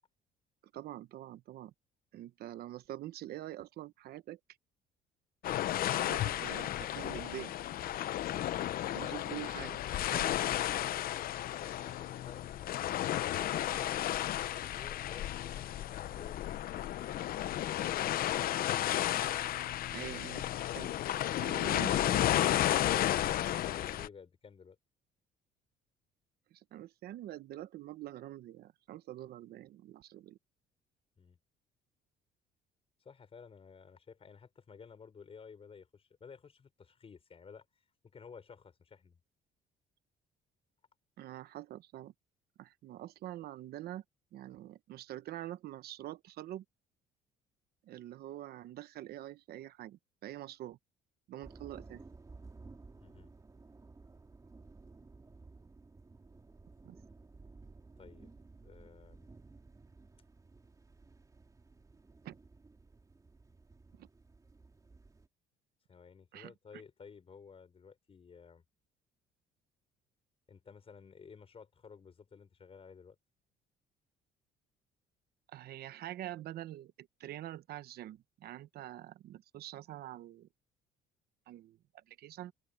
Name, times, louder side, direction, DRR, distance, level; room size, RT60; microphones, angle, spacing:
voice 1, 0.7-1.7 2.1-4.4 5.9-7.5 8.9-10.3 19.9-20.4 20.8-21.0 21.4-22.8 26.5-30.4 41.2-42.1 42.6-44.0 44.3-46.6 47.8-50.8 51.3-52.0 56.8-57.0 62.2-62.4 64.0-64.1 66.3-66.8 75.5-80.5 81.5-82.5, right 13 dB, 65° right, 1.0 m, -45 dB
sound 1, 5.4-24.1, left 13 dB, 60° left, 0.7 m, -33 dB
voice 2, 11.6-14.0 14.6-17.1 19.8-20.5 23.5-24.8 31.2-31.4 33.0-37.7 38.0-39.2 53.0-53.3 58.0-58.3 58.6-59.3 65.9-68.6 70.5-73.2, left 6 dB, 35° left, 5.6 m, -54 dB
sound 2, 51.4-65.3, right 3 dB, 20° right, 3.3 m, -56 dB
open air
cardioid pair, 110°, 17 cm